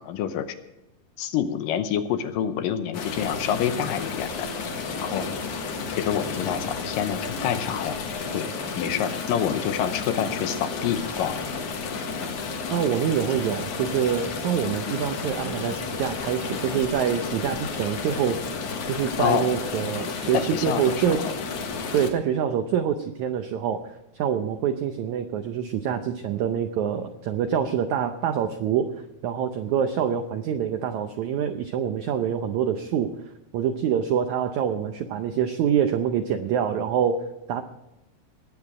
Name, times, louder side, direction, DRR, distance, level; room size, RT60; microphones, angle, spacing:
voice 1, 0.0-0.5 1.2-4.5 5.0-5.3 5.9-8.0 8.3-8.5 8.8-11.4 19.2-19.6 20.3-20.8, left 9 dB, 75° left, 9 dB, 2.3 m, -27 dB
sound 1, 2.9-22.1, left 4 dB, 60° left, 2.7 m, -32 dB
voice 2, 12.7-18.5 18.9-21.2 21.9-28.9 29.2-33.1 33.5-37.6, right 8 dB, 80° right, 7 dB, 1.7 m, -26 dB
20.0 x 9.0 x 4.8 m, 0.96 s
omnidirectional pair, 4.3 m